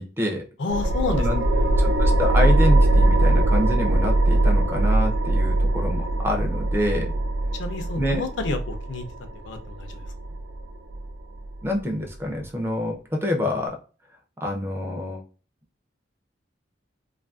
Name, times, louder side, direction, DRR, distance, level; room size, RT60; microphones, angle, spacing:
voice 1, 0.0-0.4 1.1-1.4 1.8-7.1 8.0-8.2 11.6-13.8 14.4-15.2, left 1 dB, 15° right, 2 dB, 0.4 m, -27 dB
voice 2, 0.6-1.7 7.5-9.0 9.4-10.0, left 3 dB, 80° left, 6 dB, 0.5 m, -30 dB
sound 1, 0.7-11.8, right 1 dB, 85° right, 0.4 m, -21 dB
2.5 x 2.5 x 2.3 m, 0.37 s
head